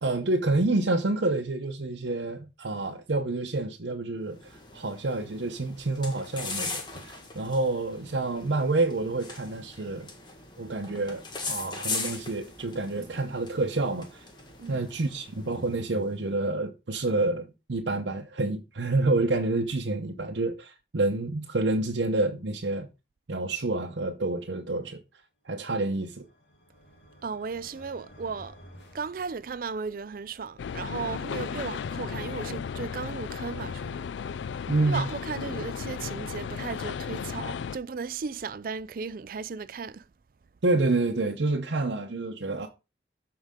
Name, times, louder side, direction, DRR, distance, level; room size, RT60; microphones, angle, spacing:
voice 1, 0.0-10.1 10.6-14.2 14.7-22.9 23.3-25.0 25.5-26.3 34.7-35.0 40.6-42.7, right 2 dB, 85° right, 0.8 m, -28 dB
sound 1, 4.3-16.1, left 4 dB, 25° left, 1.6 m, -40 dB
sound 2, 25.6-29.9, equal, 70° left, 2.3 m, -53 dB
voice 2, 27.2-28.6 28.9-34.0 34.9-40.0, right 5 dB, 50° right, 0.4 m, -35 dB
sound 3, 30.6-37.8, left 6 dB, 85° left, 0.4 m, -35 dB
13.0 x 4.8 x 3.7 m
head